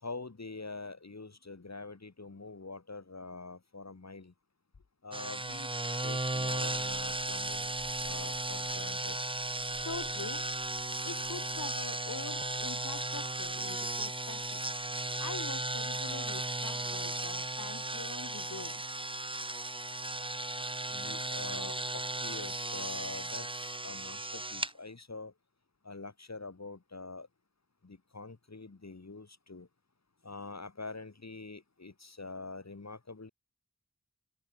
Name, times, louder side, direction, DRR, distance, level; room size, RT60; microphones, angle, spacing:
voice 1, 0.0-4.3 5.0-5.7 6.0-7.7 8.0-9.2 20.9-25.3 25.8-27.3 27.8-29.7 30.2-33.3, left 3 dB, 60° left, 4.4 m, -45 dB
sound 1, 5.1-24.7, right 2 dB, 15° right, 0.9 m, -36 dB
voice 2, 9.8-10.5 11.0-14.6 15.2-18.8, left 4 dB, 80° left, 2.3 m, -44 dB
wide cardioid pair, 65°, 30 cm